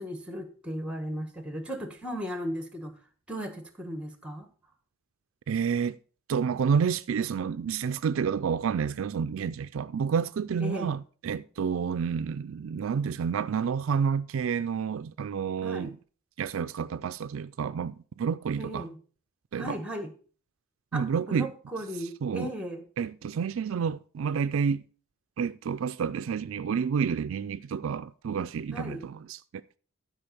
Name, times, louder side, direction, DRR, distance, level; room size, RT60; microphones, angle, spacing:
voice 1, 0.0-3.0 3.3-4.5 10.6-10.9 15.6-15.9 18.6-19.0 19.6-20.1 20.9-22.8 28.7-29.0, equal, 5° right, 1.3 m, -36 dB
voice 2, 5.5-6.0 6.3-16.0 16.4-18.9 19.5-19.8 20.9-21.5 22.0-22.5 23.0-24.8 25.4-29.4, right 6 dB, 70° right, 0.4 m, -29 dB
12.0 x 5.1 x 5.3 m
head